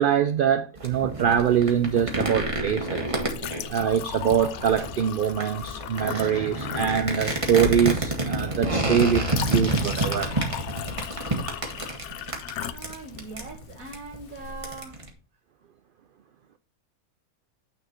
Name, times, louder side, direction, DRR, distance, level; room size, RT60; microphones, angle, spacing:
voice 1, 0.0-3.1 3.7-10.3, right 8 dB, 75° right, 0.5 m, -24 dB
sound 1, 0.8-15.1, right 1 dB, 25° right, 1.6 m, -29 dB
Chink clink, 1.2-14.8, left 9 dB, 65° left, 0.8 m, -38 dB
voice 2, 12.7-15.0, right 3 dB, 90° right, 1.9 m, -41 dB
9.3 x 4.5 x 4.3 m
omnidirectional pair, 1.4 m